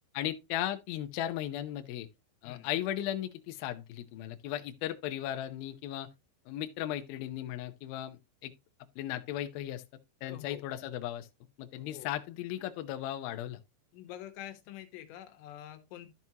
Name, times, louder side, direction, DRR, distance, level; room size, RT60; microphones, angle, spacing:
voice 1, 0.1-2.1 2.4-6.1 6.5-8.5 9.0-9.8 10.2-11.3 11.6-13.6, left 12 dB, 90° left, 2.1 m, -36 dB
voice 2, 10.2-10.6 11.9-12.1 13.9-16.3, left 12 dB, 75° left, 3.1 m, -46 dB
12.5 x 6.0 x 2.8 m
omnidirectional pair, 5.5 m